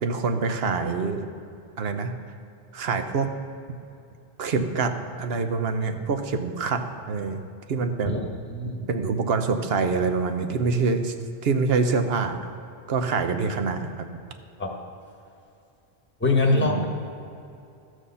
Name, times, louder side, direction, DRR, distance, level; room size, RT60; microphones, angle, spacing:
voice 1, 0.0-1.3 1.8-2.1 2.7-3.3 4.4-4.9 5.2-7.4 7.7-8.2 8.9-11.1 11.4-12.4 12.9-14.1 16.5-16.9, right 4 dB, 65° right, 7 dB, 1.0 m, -25 dB
voice 2, 8.5-8.8 14.6-14.7 16.2-16.9, left 2 dB, 10° left, 0 dB, 1.1 m, -23 dB
14.0 x 6.3 x 5.5 m, 2.6 s
omnidirectional pair, 1.1 m